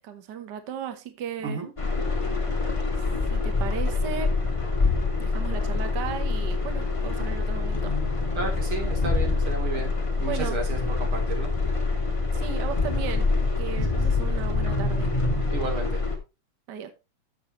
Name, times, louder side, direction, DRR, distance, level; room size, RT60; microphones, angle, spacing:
voice 1, 0.0-1.6 3.3-4.3 5.2-8.0 10.3-10.6 12.3-15.1 16.7-16.9, right 8 dB, 65° right, 1.0 m, -36 dB
sound 1, 1.8-16.2, left 3 dB, 10° left, 1.9 m, -25 dB
voice 2, 8.4-9.9 10.2-11.5 13.7-14.0 15.5-16.0, right 3 dB, 45° right, 4.0 m, -32 dB
14.0 x 7.1 x 3.1 m
omnidirectional pair, 3.3 m